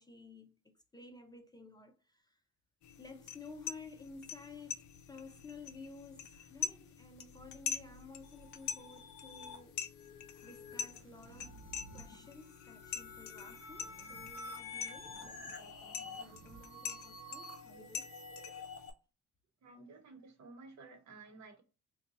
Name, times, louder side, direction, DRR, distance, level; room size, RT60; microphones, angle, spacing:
voice 1, 0.0-2.4 3.0-9.8 10.4-18.1, left 3 dB, 15° left, 0.4 m, -54 dB
sound 1, 2.8-18.9, left 8 dB, 70° left, 0.5 m, -45 dB
sound 2, 8.2-18.9, left 3 dB, 50° left, 0.9 m, -50 dB
sound 3, 8.6-9.3 10.3-12.2 13.7-14.3 14.8-15.6 16.0-16.7, right 6 dB, 45° right, 0.4 m, -58 dB
voice 2, 19.6-21.6, right 3 dB, 65° right, 1.0 m, -54 dB
2.7 x 2.3 x 3.7 m
cardioid pair, 90°, 30 cm